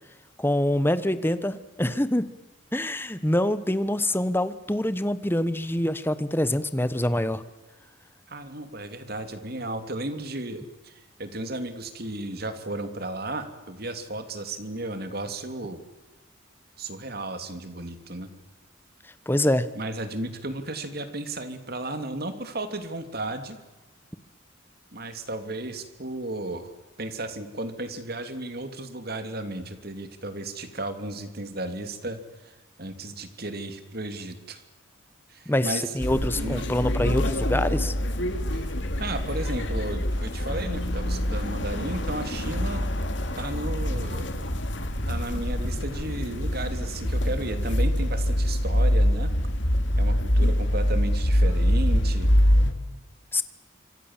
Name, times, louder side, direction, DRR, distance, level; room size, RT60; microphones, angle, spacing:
voice 1, 0.4-2.3 2.7-7.4 19.3-19.7 35.5-37.9 53.3-53.4, left 1 dB, 10° left, 13 dB, 1.1 m, -25 dB
voice 2, 8.3-15.8 16.8-18.3 19.7-23.6 24.9-26.7 27.0-34.6 35.3-35.9 36.3-36.6 38.5-38.7 39.0-42.9 43.4-44.3 45.1-49.3 50.0-52.3, right 2 dB, 50° right, 8 dB, 2.8 m, -34 dB
sound 1, 36.0-52.7, equal, 60° left, 2.7 m, -25 dB
26.5 x 25.5 x 7.4 m, 1.1 s
head